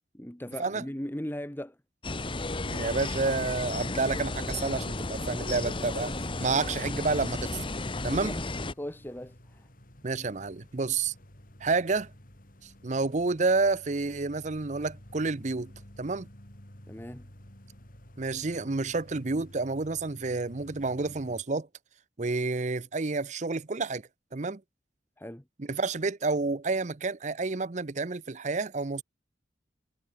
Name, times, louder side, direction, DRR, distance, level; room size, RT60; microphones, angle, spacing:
voice 1, 0.1-1.8 8.1-9.7 16.9-17.3 25.2-25.4, equal, 10° left, 1.5 m, -39 dB
sound 1, 2.0-8.7, left 2 dB, 30° left, 1.3 m, -33 dB
voice 2, 2.7-7.7 8.0-8.3 10.0-11.1 11.6-12.1 12.6-15.7 16.0-16.3 18.2-21.7 22.2-24.0 24.3-24.6 25.6-29.0, right 3 dB, 40° right, 0.7 m, -29 dB
sound 2, 4.8-21.4, equal, 50° left, 4.1 m, -52 dB
head